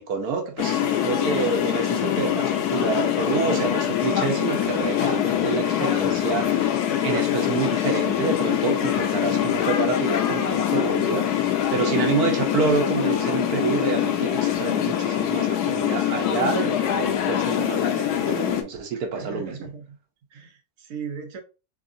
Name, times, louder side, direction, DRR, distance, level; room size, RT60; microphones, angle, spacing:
voice 1, 0.0-19.5, right 5 dB, 75° right, 1.3 m, -28 dB
sound 1, 0.6-18.6, left 11 dB, 90° left, 1.2 m, -24 dB
sound 2, 3.9-4.8 5.3-8.0 8.8-11.9 12.4-15.4 15.9-18.5, left 4 dB, 50° left, 0.8 m, -40 dB
voice 2, 18.9-20.0 20.3-21.4, right 6 dB, 60° right, 1.1 m, -37 dB
3.7 x 3.5 x 2.6 m
omnidirectional pair, 1.6 m